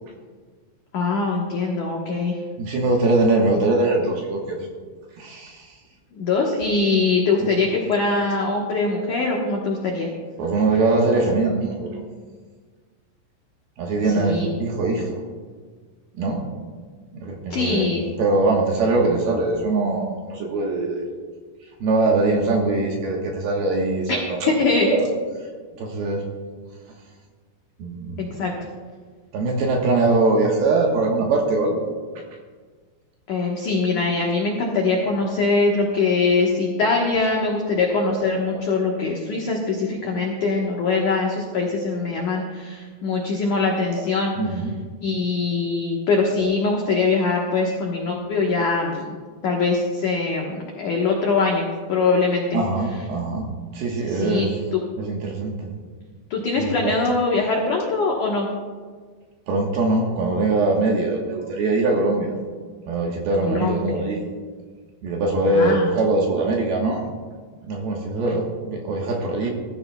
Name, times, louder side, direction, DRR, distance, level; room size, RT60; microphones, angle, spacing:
voice 1, 0.9-2.4 6.1-10.1 14.1-14.5 17.5-18.0 24.1-24.2 24.5-24.9 28.2-28.5 33.3-44.3 45.0-49.1 49.4-52.6 54.0-54.8 56.3-58.5 63.4-63.8 65.5-65.9, left 3 dB, 75° left, -1 dB, 1.8 m, -22 dB
voice 2, 2.6-4.7 5.2-5.7 7.4-7.5 10.4-12.0 13.8-15.2 16.2-16.4 17.2-17.9 18.2-21.0 21.8-25.1 25.8-26.2 27.8-28.3 29.3-31.9 42.1-42.3 44.4-44.7 52.5-53.5 53.7-55.7 56.6-56.9 59.5-62.4 62.9-64.2 65.0-67.1 67.6-69.5, right 2 dB, 70° right, 0 dB, 2.7 m, -22 dB
20.0 x 13.5 x 2.3 m, 1.5 s
omnidirectional pair, 5.5 m